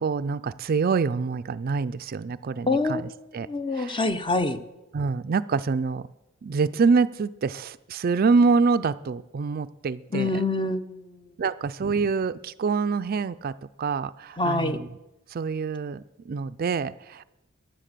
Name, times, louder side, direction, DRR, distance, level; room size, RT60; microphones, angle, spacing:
voice 1, 0.0-3.5 3.7-4.1 4.9-6.1 6.4-10.4 11.4-14.9 15.3-17.2, right 4 dB, 45° right, 15 dB, 0.4 m, -26 dB
voice 2, 2.7-3.0 3.5-4.6 10.1-11.1 14.4-14.8, left 2 dB, 25° left, 11 dB, 0.7 m, -25 dB
15.0 x 10.5 x 6.7 m, 0.97 s
head